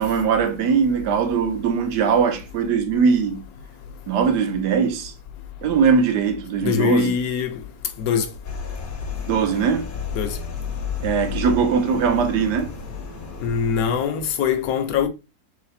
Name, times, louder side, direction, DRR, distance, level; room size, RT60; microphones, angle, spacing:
voice 1, 0.0-3.4 4.1-5.1 5.6-7.2 9.3-9.9 11.0-12.7, right 6 dB, 90° right, 1.3 m, -20 dB
voice 2, 6.6-7.6 8.0-8.3 10.1-10.4 13.4-15.1, left 7 dB, 70° left, 0.9 m, -22 dB
sound 1, 8.4-14.0, left 6 dB, 55° left, 0.6 m, -32 dB
3.2 x 3.2 x 4.0 m
omnidirectional pair, 1.7 m